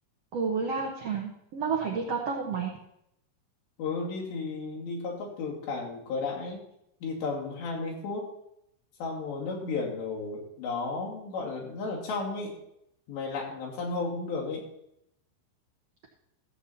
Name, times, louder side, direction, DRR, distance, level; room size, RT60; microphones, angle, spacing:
voice 1, 0.3-2.7, right 5 dB, 75° right, 0 dB, 1.4 m, -30 dB
voice 2, 3.8-6.6 7.0-8.3 9.0-12.5 13.1-14.7, left 3 dB, 90° left, -2 dB, 4.6 m, -33 dB
15.0 x 7.8 x 4.2 m, 0.78 s
omnidirectional pair, 4.8 m